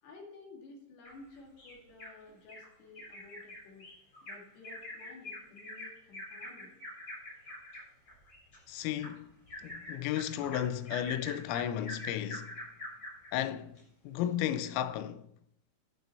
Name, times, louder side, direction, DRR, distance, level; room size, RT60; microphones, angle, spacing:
voice 1, 0.0-3.9 4.2-6.8, left 3 dB, 60° left, 4.0 m, -53 dB
Bird vocalization bird call bird song, 1.0-2.1 2.5-2.7 2.9-13.3 13.8-13.9 14.2-14.3, left 1 dB, 25° left, 4.5 m, -45 dB
voice 2, 8.7-9.3 9.6-12.5 13.3-13.8 14.0-15.3, left 11 dB, 85° left, 3.4 m, -34 dB
10.5 x 10.5 x 4.2 m
omnidirectional pair, 5.8 m